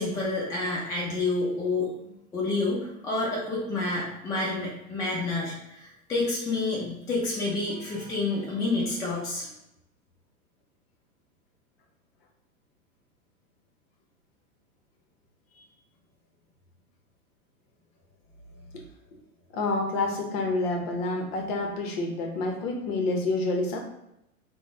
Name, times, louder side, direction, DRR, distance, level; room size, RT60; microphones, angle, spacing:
voice 1, 0.0-1.9 2.3-9.5, left 3 dB, 10° left, -5 dB, 0.4 m, -29 dB
voice 2, 19.5-23.8, left 2 dB, 45° left, 2 dB, 0.8 m, -28 dB
3.7 x 2.1 x 3.6 m, 0.82 s
figure-of-eight pair, 100°, 44 cm